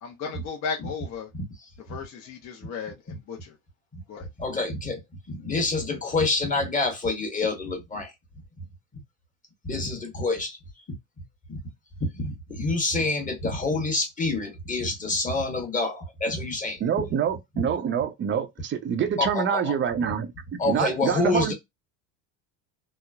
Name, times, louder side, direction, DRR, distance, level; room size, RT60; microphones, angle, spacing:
voice 1, 0.0-1.3 1.9-3.5 4.1-4.3, left 5 dB, 45° left, 0.8 m, -35 dB
voice 2, 4.4-5.0 5.3-8.1 9.6-10.6 11.5-11.6 12.2-16.8 19.2-19.7 20.6-21.5, left 3 dB, 20° left, 1.1 m, -27 dB
voice 3, 16.8-20.3 20.7-21.5, right 8 dB, 30° right, 0.5 m, -26 dB
2.9 x 2.0 x 2.3 m
supercardioid pair, 110°, 40 cm